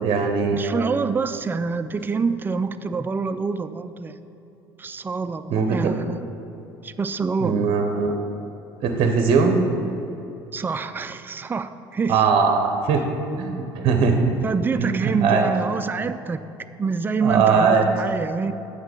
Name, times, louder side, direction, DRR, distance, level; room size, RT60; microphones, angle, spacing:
voice 1, 0.0-0.9 5.5-5.8 7.4-8.1 8.8-9.6 12.1-13.0 13.4-14.3 14.8-15.5 17.2-17.8, right 5 dB, 50° right, 4 dB, 0.7 m, -20 dB
voice 2, 0.5-4.2 4.8-6.2 6.8-7.6 10.5-12.2 14.4-16.4 16.8-18.5, right 5 dB, 15° right, 11 dB, 0.3 m, -26 dB
8.0 x 3.9 x 6.3 m, 2.9 s
hypercardioid pair, 65°, 12 cm